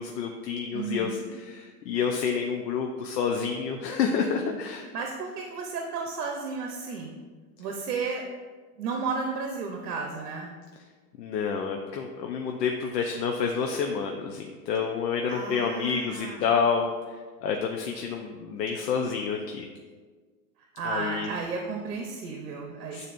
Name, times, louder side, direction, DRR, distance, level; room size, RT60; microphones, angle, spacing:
voice 1, 0.0-4.9 11.2-16.9 17.4-19.7 20.8-21.3 22.9-23.1, left 6 dB, 85° left, 2 dB, 0.8 m, -29 dB
voice 2, 0.7-1.3 4.9-7.2 7.6-8.2 8.8-10.5 15.3-16.5 20.8-23.1, right 4 dB, 70° right, 1 dB, 0.9 m, -33 dB
9.1 x 4.1 x 2.5 m, 1.4 s
supercardioid pair, 170°, 48 cm